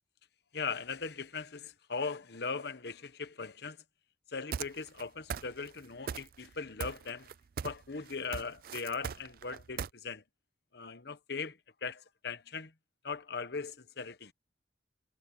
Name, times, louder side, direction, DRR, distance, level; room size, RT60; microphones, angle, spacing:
voice 1, 0.5-3.8 4.3-7.3 7.6-10.2 10.7-12.7 13.0-14.3, left 4 dB, 60° left, 1.0 m, -39 dB
sound 1, 4.5-5.0 5.3-5.8 6.1-6.5 6.8-9.9, right 7 dB, 50° right, 0.4 m, -38 dB
head